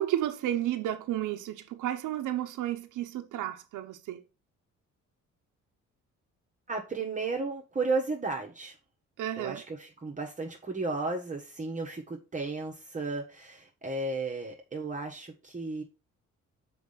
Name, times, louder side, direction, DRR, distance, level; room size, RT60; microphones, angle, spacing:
voice 1, 0.0-4.2 9.2-9.6, right 12 dB, 85° right, 1.0 m, -32 dB
voice 2, 6.7-8.8 9.4-15.8, right 3 dB, 25° right, 1.5 m, -34 dB
6.0 x 4.8 x 5.7 m
cardioid pair, 90°, 30 cm